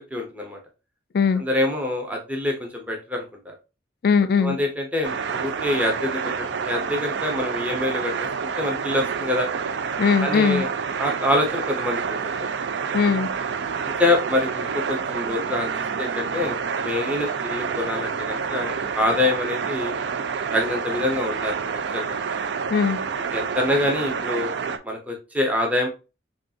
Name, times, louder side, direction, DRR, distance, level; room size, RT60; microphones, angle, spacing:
voice 1, 0.1-0.6 1.4-3.5 4.4-8.3 8.6-9.5 10.2-10.7 11.0-12.5 14.0-15.7 16.0-19.9 20.5-22.0 23.3-24.6 24.8-25.9, left 1 dB, 10° right, 0.7 m, -25 dB
voice 2, 4.0-4.6 10.0-10.6 12.9-13.3 22.7-23.0, left 6 dB, 50° left, 0.3 m, -19 dB
sound 1, 5.0-24.8, right 6 dB, 65° right, 0.4 m, -28 dB
5.1 x 2.4 x 2.7 m
head